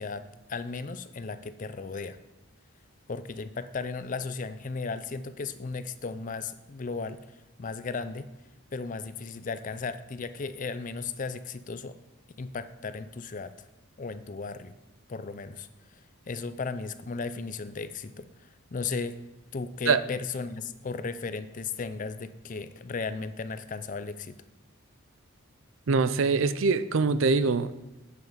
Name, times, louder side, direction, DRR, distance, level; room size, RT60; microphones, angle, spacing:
voice 1, 0.0-2.2 3.1-7.2 7.6-8.3 8.7-12.0 12.4-13.5 14.0-14.7 15.1-16.0 16.3-19.2 19.5-24.4, left 4 dB, 35° left, 12 dB, 0.4 m, -35 dB
voice 2, 25.9-27.7, right 4 dB, 65° right, 14 dB, 0.5 m, -23 dB
9.5 x 7.1 x 5.4 m, 1.0 s
head